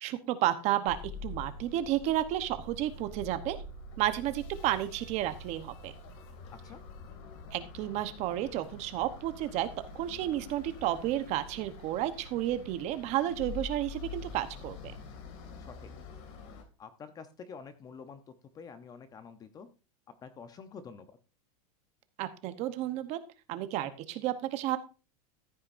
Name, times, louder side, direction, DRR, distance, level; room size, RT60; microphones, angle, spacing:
voice 1, 0.0-1.0 1.2-3.6 4.0-5.9 7.5-9.7 9.9-14.9 22.2-23.2 23.5-24.8, right 13 dB, 35° right, 11 dB, 1.0 m, -32 dB
sound 1, 0.9-16.6, left 3 dB, 50° left, 2.4 m, -46 dB
voice 2, 15.6-15.9 16.8-18.2 18.5-19.7 20.2-21.2, left 5 dB, 20° left, 10 dB, 0.8 m, -47 dB
14.5 x 8.6 x 2.6 m, 0.31 s
supercardioid pair, 160°, 19 cm